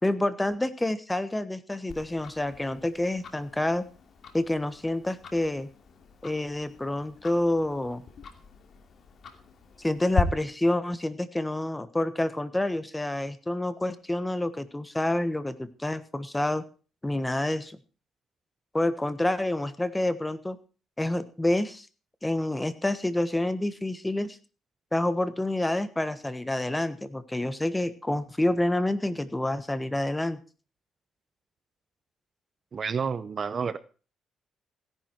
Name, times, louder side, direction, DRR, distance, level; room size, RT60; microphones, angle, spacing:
voice 1, 0.0-3.8 4.3-5.7 6.2-8.0 9.8-16.6 17.0-17.8 18.7-20.6 21.0-21.9 22.2-24.4 24.9-30.4, left 1 dB, 10° left, 13 dB, 1.4 m, -28 dB
Tick-tock, 1.9-10.2, left 6 dB, 55° left, 2.7 m, -38 dB
voice 2, 32.7-33.8, right 6 dB, 45° right, 16 dB, 0.8 m, -30 dB
17.0 x 11.0 x 4.7 m, 0.37 s
cardioid pair, 90°, 0 cm